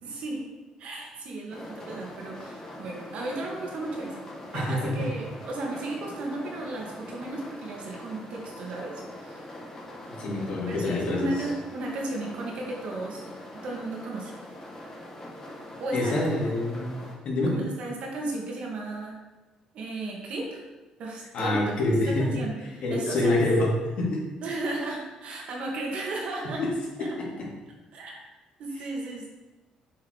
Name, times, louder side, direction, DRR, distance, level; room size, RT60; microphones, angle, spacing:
voice 1, 0.0-0.5 0.8-4.2 4.5-9.5 10.7-13.2 13.5-14.3 15.8-16.1 17.5-19.2 19.7-20.6 21.0-21.7 22.1-23.4 24.4-26.6 27.0-27.1 27.9-28.2 28.6-29.3, right 2 dB, 65° right, -1 dB, 2.0 m, -34 dB
sound 1, 1.5-17.2, left 1 dB, 25° left, 2.1 m, -43 dB
voice 2, 4.5-5.1 10.2-11.3 15.9-17.0 17.2-17.5 21.3-22.4 22.8-24.2 26.6-26.7 27.0-27.5, left 2 dB, 60° left, -4 dB, 2.7 m, -26 dB
7.6 x 4.8 x 4.8 m, 1.2 s
cardioid pair, 90°, 2 cm